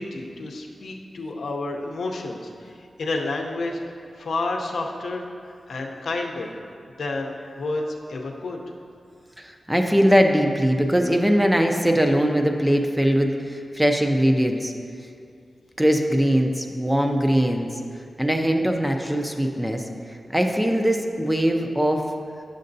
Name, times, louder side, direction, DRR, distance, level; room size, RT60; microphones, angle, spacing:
voice 1, 0.0-3.8 4.2-5.2 5.7-6.5 7.0-8.6, left 2 dB, 85° left, 1 dB, 0.7 m, -30 dB
voice 2, 9.4-14.7 15.8-17.8 18.2-22.0, equal, 5° right, 3 dB, 0.4 m, -21 dB
9.5 x 6.4 x 2.6 m, 2.3 s
wide cardioid pair, 130°, 0 cm